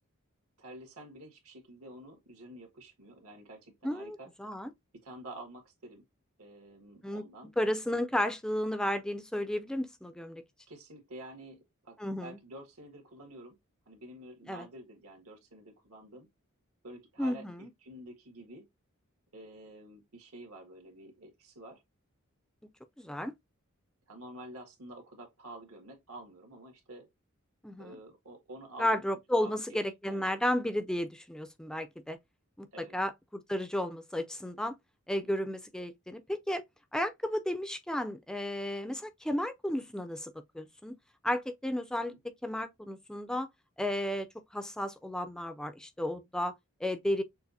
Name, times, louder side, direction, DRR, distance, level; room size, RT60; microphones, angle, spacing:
voice 1, 0.6-4.3 5.0-6.0 6.4-7.5 10.7-13.6 13.9-16.3 16.8-18.6 19.3-21.8 24.1-27.1 27.8-29.0 29.4-29.8 30.1-30.3 32.7-33.0 35.2-35.3 42.1-42.2, right 1 dB, 90° right, 1.8 m, -49 dB
voice 2, 3.8-4.7 7.0-7.3 7.6-10.4 12.0-12.4 14.5-14.7 17.2-17.7 23.0-23.3 27.6-28.0 28.8-32.2 32.6-34.7 35.1-36.6 36.9-41.0 41.2-42.1 42.4-43.5 43.8-46.5 46.8-47.2, left 1 dB, 5° left, 0.3 m, -33 dB
6.7 x 2.5 x 2.6 m
head